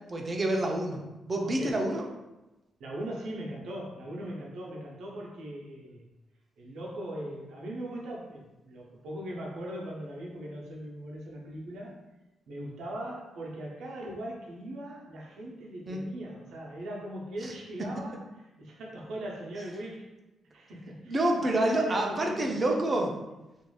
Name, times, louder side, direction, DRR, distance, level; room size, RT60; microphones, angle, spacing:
voice 1, 0.1-2.1 15.9-16.0 21.1-23.1, right 1 dB, 35° right, 1 dB, 0.5 m, -28 dB
voice 2, 1.4-1.9 2.8-6.1 6.6-12.0 12.5-20.1 20.5-23.0, right 1 dB, 80° right, -2 dB, 0.7 m, -40 dB
3.0 x 2.5 x 2.3 m, 1.0 s
cardioid pair, 75°, 0 cm